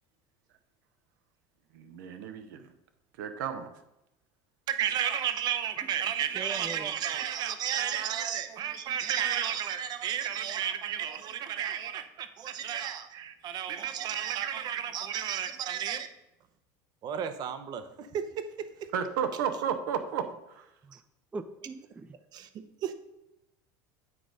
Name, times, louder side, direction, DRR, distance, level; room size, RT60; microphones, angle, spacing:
voice 1, 1.7-2.7 3.2-3.7 18.9-20.6, right 8 dB, 90° right, 8 dB, 0.8 m, -33 dB
voice 2, 4.7-16.1 17.0-18.7 22.3-22.5 22.8-22.9, right 9 dB, 45° right, 10 dB, 0.7 m, -32 dB
voice 3, 6.3-6.9 21.3-22.1, right 3 dB, 15° right, 11 dB, 0.3 m, -40 dB
8.4 x 3.9 x 4.9 m, 0.88 s
supercardioid pair, 130°, 10 cm